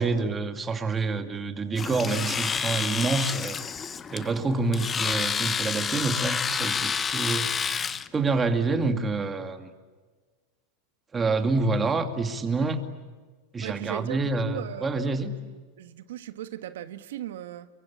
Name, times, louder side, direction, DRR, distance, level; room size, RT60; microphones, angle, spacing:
voice 1, 0.0-3.6 4.1-7.5 8.1-9.7 11.1-12.8 13.5-15.3, right 3 dB, 15° right, 2.3 m, -27 dB
Domestic sounds home sounds, 1.8-8.1, left 6 dB, 20° left, 0.9 m, -29 dB
voice 2, 13.6-17.7, right 12 dB, 85° right, 1.5 m, -38 dB
29.0 x 23.5 x 8.6 m
supercardioid pair, 145°, 0 cm